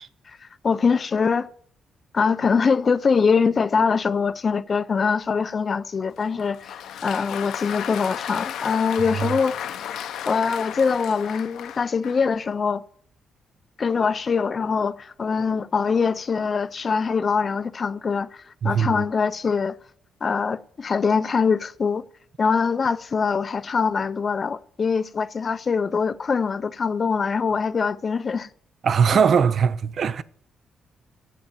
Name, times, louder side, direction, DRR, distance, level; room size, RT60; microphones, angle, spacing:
voice 1, 0.3-1.5 2.1-12.8 13.8-19.8 20.2-22.0 22.4-28.5 29.1-29.2, left 5 dB, 35° left, 0.4 m, -23 dB
Applause, 6.2-12.3, left 10 dB, 85° left, 0.7 m, -34 dB
voice 2, 18.6-19.0 28.8-30.2, right 6 dB, 50° right, 0.5 m, -20 dB
8.5 x 7.8 x 9.0 m
cardioid pair, 150°, 0 cm